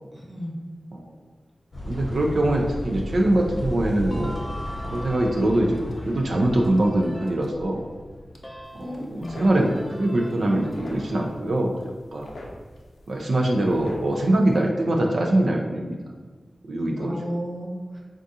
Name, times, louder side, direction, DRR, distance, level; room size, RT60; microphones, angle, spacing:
voice 1, 0.1-0.6 8.8-9.4 17.0-18.0, equal, 15° right, -3 dB, 0.8 m, -33 dB
sound 1, 1.7-9.1, left 1 dB, 50° left, 0.9 m, -35 dB
voice 2, 1.9-4.4 4.9-7.8 8.8-11.7 12.1-12.3 13.1-16.0 16.7-17.2, right 1 dB, 85° right, 0 dB, 0.4 m, -23 dB
sound 2, 4.1-7.6 7.9-11.2, equal, 20° left, 0.4 m, -41 dB
sound 3, 8.6-14.6, left 1 dB, 90° left, 0.5 m, -44 dB
3.6 x 2.4 x 2.7 m, 1.4 s
wide cardioid pair, 70°, 0 cm